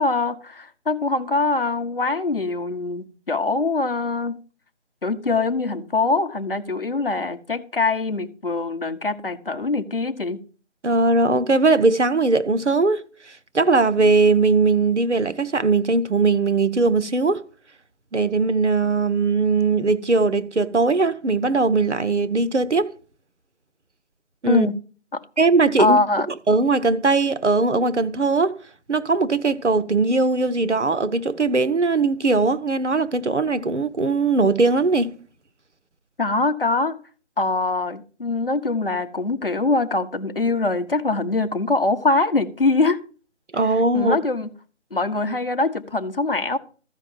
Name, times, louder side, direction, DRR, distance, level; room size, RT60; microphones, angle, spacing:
voice 1, 0.0-4.4 5.0-10.4 24.5-24.7 25.1-25.2 25.8-26.3 36.2-37.0 37.4-43.0 43.9-44.5 44.9-46.6, left 3 dB, 50° left, 0.9 m, -23 dB
voice 2, 10.8-13.0 13.5-17.4 18.1-22.9 24.4-24.7 25.4-26.0 26.5-28.6 28.9-35.1 43.5-44.2, right 3 dB, 75° right, 1.0 m, -19 dB
14.0 x 5.3 x 5.4 m
figure-of-eight pair, 165°, 36 cm